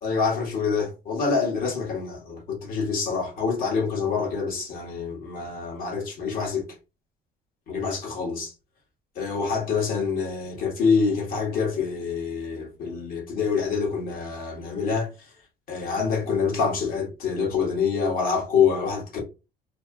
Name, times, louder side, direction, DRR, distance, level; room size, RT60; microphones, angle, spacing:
voice 1, 0.0-6.7 7.7-8.5 9.2-15.1 15.7-19.2, left 5 dB, 60° left, 1.8 m, -26 dB
3.5 x 2.9 x 2.4 m
cardioid pair, 110°, 17 cm